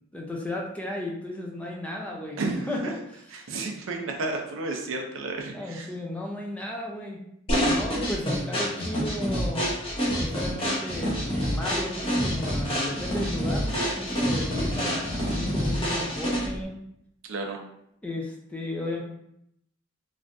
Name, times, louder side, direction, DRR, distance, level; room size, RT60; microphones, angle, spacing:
voice 1, 0.1-3.6 5.5-7.2 7.6-9.7 10.2-16.7 18.0-19.0, left 1 dB, 5° left, -1 dB, 0.4 m, -34 dB
voice 2, 2.4-2.7 3.5-5.9 17.3-17.6, right 3 dB, 80° right, 2 dB, 0.5 m, -31 dB
sound 1, 7.5-16.6, equal, 30° left, 0.7 m, -27 dB
3.2 x 2.4 x 2.5 m, 0.76 s
head